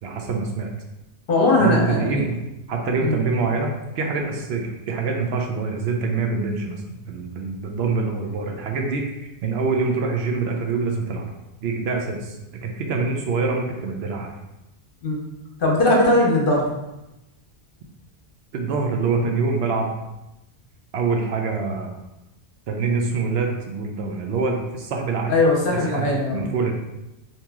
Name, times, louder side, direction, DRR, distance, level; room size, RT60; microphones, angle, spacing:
voice 1, 0.0-0.7 1.6-2.3 2.7-11.3 11.6-12.4 12.6-14.4 18.5-19.9 20.9-21.9 22.7-25.4 25.9-26.7, right 4 dB, 70° right, 1 dB, 0.8 m, -25 dB
voice 2, 1.3-2.3 3.0-3.2 15.0-15.2 15.6-16.6 25.3-26.5, left 2 dB, 55° left, -2 dB, 0.9 m, -19 dB
2.9 x 2.8 x 3.4 m, 0.95 s
omnidirectional pair, 1.1 m